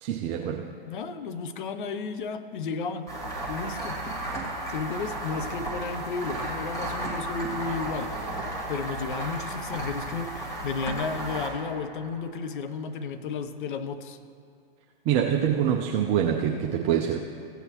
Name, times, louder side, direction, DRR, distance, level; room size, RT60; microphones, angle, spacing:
voice 1, 0.0-0.7 15.1-17.2, right 9 dB, 20° right, 2 dB, 0.4 m, -25 dB
voice 2, 0.9-3.1 3.5-4.0 4.7-8.2 8.7-14.2, left 4 dB, 55° left, 9 dB, 0.8 m, -33 dB
sound 1, 3.1-12.4, right 1 dB, 10° left, 1.6 m, -34 dB
16.0 x 7.9 x 3.0 m, 2.3 s
figure-of-eight pair, 115°, 30 cm